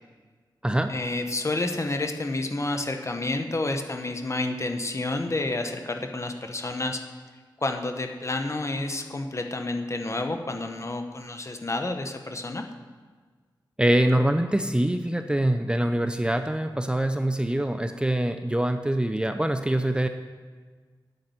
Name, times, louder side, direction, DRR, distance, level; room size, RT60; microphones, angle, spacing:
voice 1, 0.9-7.0 7.6-12.7, left 2 dB, 35° left, 5 dB, 1.1 m, -29 dB
voice 2, 13.8-20.1, right 1 dB, 10° right, 8 dB, 0.6 m, -24 dB
8.7 x 8.6 x 8.0 m, 1.5 s
wide cardioid pair, 80°, 8 cm